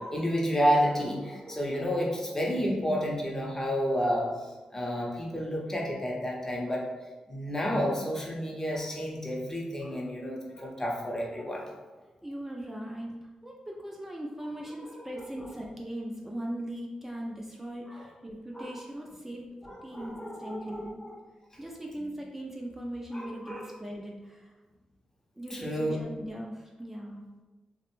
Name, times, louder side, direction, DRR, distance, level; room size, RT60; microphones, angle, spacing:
voice 1, 0.0-4.3 4.7-6.9 7.3-11.7 14.8-15.1 15.4-15.5 17.9-18.1 18.5-18.8 19.6-21.2 23.1-23.7 25.5-26.0, equal, 20° left, -2 dB, 0.7 m, -30 dB
voice 2, 12.2-13.1 13.4-19.5 19.8-21.0 21.6-24.5 25.4-27.2, right 1 dB, 10° right, -1 dB, 0.4 m, -39 dB
2.4 x 2.1 x 3.0 m, 1.2 s
cardioid pair, 60°, 2 cm